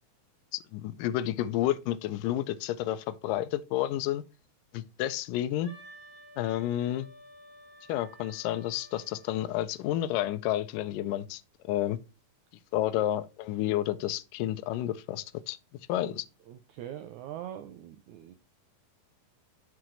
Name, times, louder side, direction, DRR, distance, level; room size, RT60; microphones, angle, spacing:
voice 1, 0.5-4.2 4.7-5.7 6.4-7.1 7.9-11.4 11.7-12.0 12.7-15.6 15.9-16.2, left 13 dB, 80° left, 2.1 m, -30 dB
Wind instrument woodwind instrument, 5.6-9.5, equal, 50° left, 4.4 m, -53 dB
voice 2, 16.5-18.3, right 11 dB, 90° right, 1.7 m, -42 dB
7.8 x 5.9 x 3.1 m
omnidirectional pair, 4.2 m